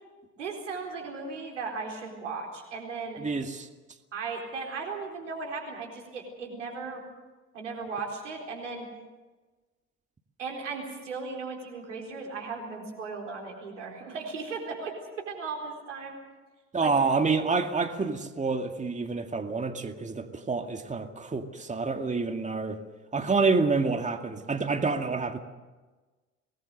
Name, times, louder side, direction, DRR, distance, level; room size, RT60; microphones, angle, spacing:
voice 1, 0.3-3.2 4.1-7.0 7.5-8.9 10.4-16.2 16.8-17.0, right 4 dB, 90° right, 1 dB, 4.1 m, -36 dB
voice 2, 3.2-3.7 16.7-22.8 23.1-25.4, right 4 dB, 20° right, 5 dB, 2.2 m, -28 dB
24.5 x 19.5 x 6.7 m, 1.3 s
hypercardioid pair, 65°, 36 cm